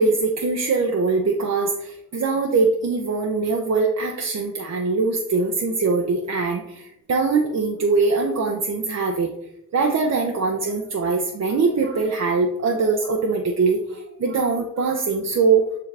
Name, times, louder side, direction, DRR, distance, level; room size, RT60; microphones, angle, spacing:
voice 1, 0.0-9.3 9.7-15.6, right 4 dB, 60° right, 1 dB, 0.7 m, -22 dB
6.2 x 4.8 x 3.3 m, 0.80 s
cardioid pair, 60°, 30 cm